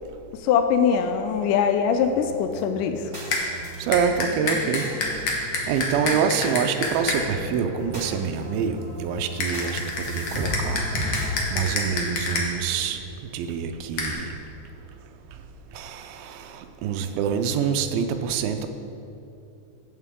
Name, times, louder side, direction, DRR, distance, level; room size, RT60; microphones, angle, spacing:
voice 1, 0.3-3.1, left 7 dB, 85° left, 7 dB, 1.9 m, -22 dB
sound 1, 2.0-11.3, equal, 25° right, 2.1 m, -36 dB
sound 2, 3.3-3.4 3.9-7.2 9.4-12.4 14.0-14.1, left 3 dB, 65° left, 1.3 m, -27 dB
voice 2, 3.8-4.9 5.7-10.8 11.5-13.0 13.3-14.3 15.7-18.7, right 7 dB, 85° right, 7 dB, 2.4 m, -26 dB
15.0 x 6.6 x 3.7 m, 2.7 s
omnidirectional pair, 4.2 m